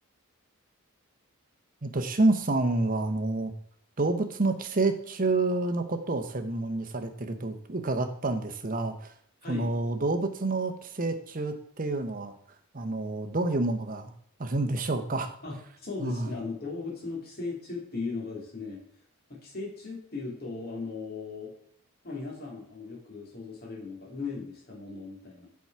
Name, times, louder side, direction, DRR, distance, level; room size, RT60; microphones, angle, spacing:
voice 1, 1.8-3.5 4.0-9.1 9.5-12.3 12.7-14.1 14.4-15.3 16.0-16.3, right 2 dB, 40° right, 7 dB, 0.8 m, -28 dB
voice 2, 15.4-18.8 19.3-21.5 22.0-25.5, left 4 dB, 45° left, -2 dB, 2.6 m, -37 dB
7.0 x 4.7 x 5.9 m, 0.63 s
head